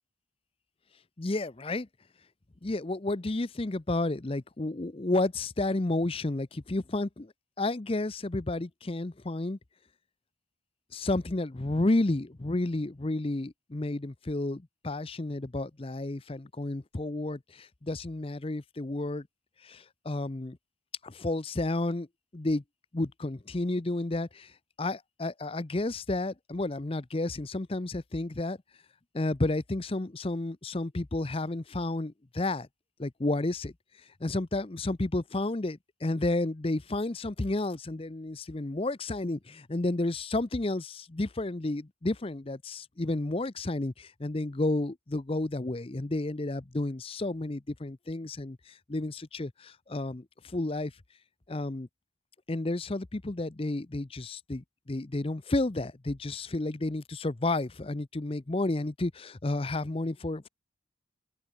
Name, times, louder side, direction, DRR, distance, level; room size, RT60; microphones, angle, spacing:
voice 1, 1.2-1.9 2.6-7.3 7.6-9.6 10.9-19.3 19.6-20.6 21.0-22.1 22.3-22.6 22.9-24.5 24.8-28.6 29.1-32.7 33.0-33.7 34.2-50.9 51.5-51.9 52.5-60.5, left 2 dB, 30° left, 0.6 m, -31 dB
open air
head